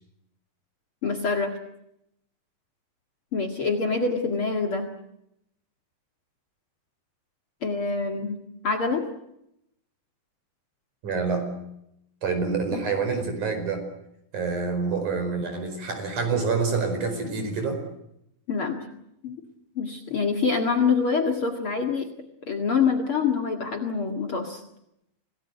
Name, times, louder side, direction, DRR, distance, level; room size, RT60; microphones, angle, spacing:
voice 1, 1.0-1.6 3.3-4.9 7.6-9.0 12.7-12.8 18.5-18.8 19.2-19.3 19.8-22.1 22.5-24.6, left 5 dB, 45° left, 3 dB, 2.4 m, -25 dB
voice 2, 11.0-11.5 12.2-13.8 14.3-17.8, right 4 dB, 55° right, 6 dB, 6.2 m, -27 dB
27.0 x 18.5 x 9.3 m, 0.81 s
omnidirectional pair, 4.1 m